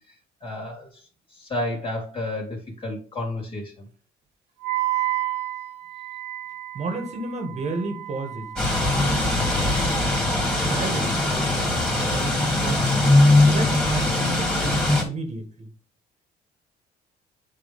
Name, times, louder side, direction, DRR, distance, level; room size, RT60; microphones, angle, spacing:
voice 1, 0.4-0.9 1.3-3.7, left 1 dB, 30° left, -1 dB, 3.2 m, -31 dB
Wind instrument woodwind instrument, 4.6-10.8, right 14 dB, 80° right, 1.3 m, -32 dB
voice 2, 6.7-10.1 10.6-13.0 13.5-15.7, right 3 dB, 40° right, 4 dB, 1.8 m, -33 dB
sound 1, 8.6-15.0, left 2 dB, 5° left, 2.9 m, -21 dB
8.3 x 3.5 x 5.3 m, 0.38 s
cardioid pair, 110°, 17 cm